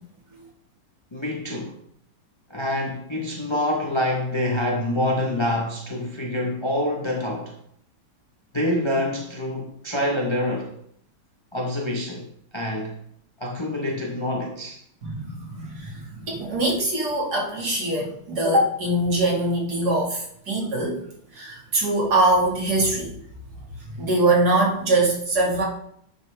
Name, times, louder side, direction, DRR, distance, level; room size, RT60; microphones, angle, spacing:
voice 1, 1.1-1.7 2.5-7.5 8.5-10.7 11.5-13.0 13.4-14.8, left 1 dB, 25° left, 0.5 m, -26 dB
voice 2, 15.0-21.0 21.3-23.1 23.9-25.6, right 2 dB, 50° right, 2.5 m, -23 dB
9.7 x 5.6 x 3.4 m
omnidirectional pair, 2.3 m